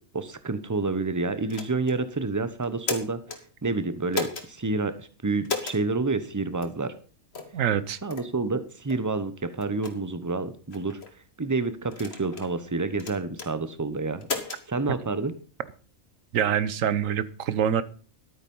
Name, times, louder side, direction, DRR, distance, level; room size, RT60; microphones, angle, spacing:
voice 1, 0.1-3.2 3.6-5.0 5.2-6.9 8.0-9.3 9.6-11.0 11.4-14.3 14.7-15.3, right 3 dB, 15° right, 0.8 m, -28 dB
Tape Deck Buttons and Switches, 1.5-2.0 2.6-3.4 4.1-4.5 5.4-5.8 6.6-6.8 7.3-7.6 8.1-8.3 8.9-9.0 9.6-9.9 10.7-11.1 11.9-12.5 13.0-13.5 14.2-14.6, left 4 dB, 50° left, 1.8 m, -33 dB
voice 2, 7.5-8.0 16.3-17.8, right 9 dB, 75° right, 1.2 m, -25 dB
12.0 x 9.1 x 5.5 m
omnidirectional pair, 1.4 m